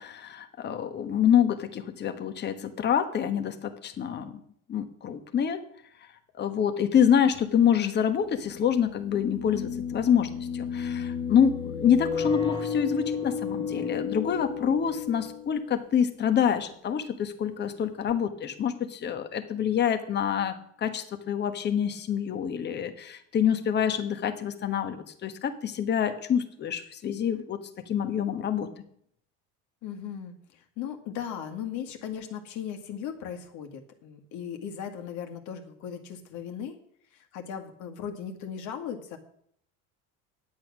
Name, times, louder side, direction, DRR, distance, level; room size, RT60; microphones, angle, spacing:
voice 1, 0.0-4.3 4.7-5.6 6.3-20.6 20.8-27.6 27.9-28.7, left 8 dB, 30° left, 8 dB, 1.2 m, -26 dB
sound 1, 7.4-7.5 8.9-15.8, left 6 dB, 15° left, 1.4 m, -32 dB
voice 2, 29.8-36.7 37.1-39.2, left 8 dB, 60° left, 5 dB, 1.9 m, -37 dB
10.0 x 8.5 x 6.1 m, 0.66 s
cardioid pair, 135°, 34 cm